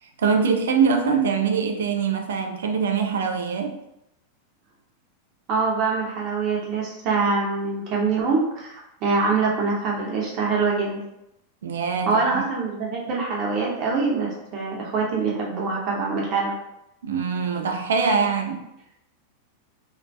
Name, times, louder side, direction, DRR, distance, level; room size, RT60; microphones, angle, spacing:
voice 1, 0.0-3.8 11.6-12.5 17.0-18.6, right 5 dB, 70° right, 5 dB, 0.3 m, -23 dB
voice 2, 5.5-11.0 12.1-16.5, right 4 dB, 45° right, -3 dB, 0.7 m, -24 dB
2.6 x 2.1 x 2.2 m, 0.85 s
hypercardioid pair, 95°, 0 cm